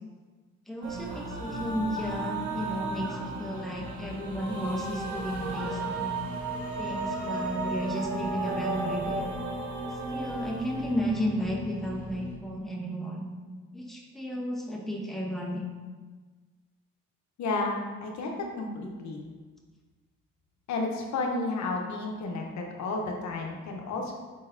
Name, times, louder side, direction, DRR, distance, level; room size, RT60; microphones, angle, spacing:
voice 1, 0.7-6.1 6.8-9.3 10.1-13.3 13.7-15.6, equal, ahead, -2 dB, 0.9 m, -33 dB
sound 1, 0.8-12.4, right 2 dB, 70° right, 1.0 m, -34 dB
voice 2, 17.4-19.2 20.7-24.1, left 3 dB, 65° left, 1 dB, 0.8 m, -32 dB
5.1 x 3.8 x 2.6 m, 1.4 s
cardioid pair, 90°, 30 cm